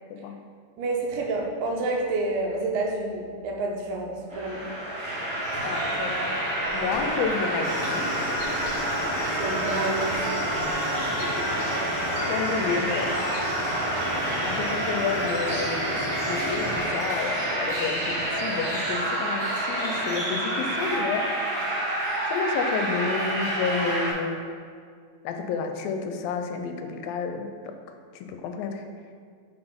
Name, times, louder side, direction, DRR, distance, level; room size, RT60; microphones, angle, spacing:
voice 1, 0.8-4.7 9.4-10.6, right 2 dB, 80° right, 0 dB, 2.5 m, -29 dB
sound 1, 4.3-24.1, right 1 dB, 45° right, 1.8 m, -28 dB
voice 2, 5.6-6.2 6.7-8.1 11.0-11.4 11.7-11.8 12.3-13.1 14.4-21.3 22.3-24.4 25.2-27.7 28.2-28.8, left 5 dB, 85° left, 6 dB, 2.3 m, -30 dB
sound 2, 7.6-16.9, left 1 dB, 70° left, 2.4 m, -35 dB
5.5 x 4.0 x 5.2 m, 2.1 s
omnidirectional pair, 4.1 m